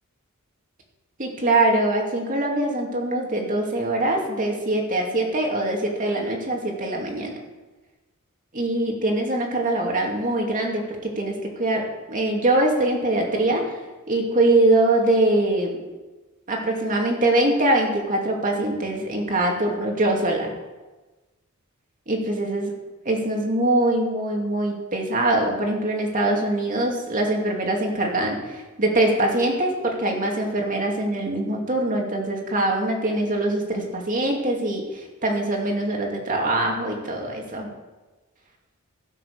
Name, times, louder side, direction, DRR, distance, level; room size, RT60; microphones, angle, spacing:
voice 1, 1.2-7.3 8.5-13.7 14.1-15.7 16.5-20.5 22.1-22.7 23.0-37.7, right 1 dB, 35° right, 0 dB, 2.5 m, -23 dB
16.0 x 6.5 x 6.8 m, 1.2 s
head